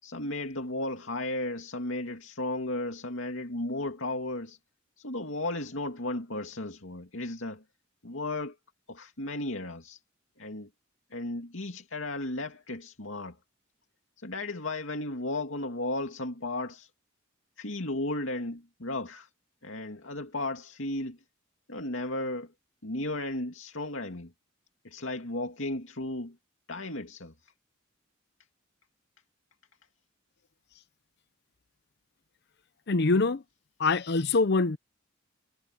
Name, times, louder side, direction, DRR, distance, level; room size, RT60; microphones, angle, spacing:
voice 1, 0.0-4.6 5.0-7.6 8.0-8.6 8.9-10.0 10.4-10.7 11.1-13.4 14.2-16.9 17.6-19.3 19.6-21.2 21.7-22.5 22.8-24.3 24.8-26.4 26.7-27.5, left 2 dB, 70° left, 2.5 m, -34 dB
voice 2, 32.9-33.4 33.8-34.8, left 3 dB, 55° left, 0.7 m, -24 dB
head